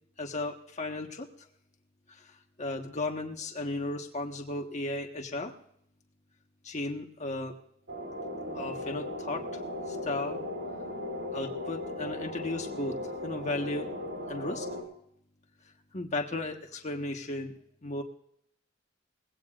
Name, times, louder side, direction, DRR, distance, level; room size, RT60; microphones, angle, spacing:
voice 1, 0.2-1.3 2.1-2.2 2.6-5.5 6.6-7.5 8.5-9.6 9.9-10.4 11.3-13.0 13.2-13.9 14.3-14.7 15.9-18.0, left 2 dB, 40° left, 2 dB, 1.4 m, -35 dB
sound 1, 7.9-14.8, left 1 dB, 90° right, 4.3 m, -37 dB
21.0 x 16.5 x 2.5 m, 0.71 s
head